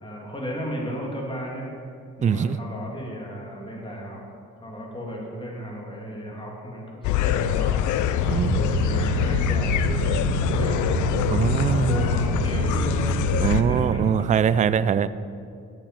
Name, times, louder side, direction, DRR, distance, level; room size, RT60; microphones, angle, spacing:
voice 1, 0.0-1.7 2.2-4.2 4.6-7.8 8.4-10.9 11.7-13.2 13.4-14.7, equal, 15° left, -2 dB, 2.6 m, -35 dB
voice 2, 2.2-2.6 8.2-8.6 11.3-12.0 13.4-15.1, right 7 dB, 25° right, 15 dB, 0.3 m, -22 dB
sound 1, 7.0-13.6, left 10 dB, 75° left, 0.5 m, -24 dB
sound 2, 8.3-14.1, right 8 dB, 60° right, 0.6 m, -28 dB
8.5 x 7.0 x 7.4 m, 2.4 s
cardioid pair, 90°, 30 cm